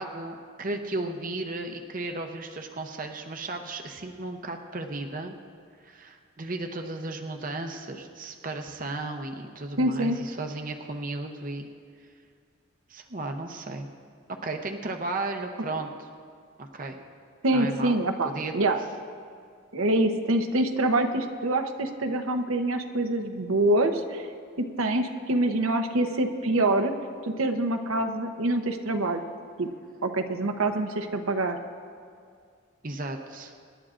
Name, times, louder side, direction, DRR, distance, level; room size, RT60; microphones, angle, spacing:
voice 1, 0.0-5.4 5.8-11.7 12.9-13.9 14.3-16.1 16.6-17.0 17.5-18.0 18.2-18.5 32.8-33.5, right 2 dB, 40° right, 4 dB, 0.7 m, -34 dB
voice 2, 9.8-10.2 17.4-18.8 19.7-24.3 24.8-26.9 27.2-29.2 29.6-29.7 30.0-31.6, right 2 dB, 85° right, 6 dB, 0.9 m, -25 dB
26.0 x 11.0 x 2.5 m, 2.2 s
head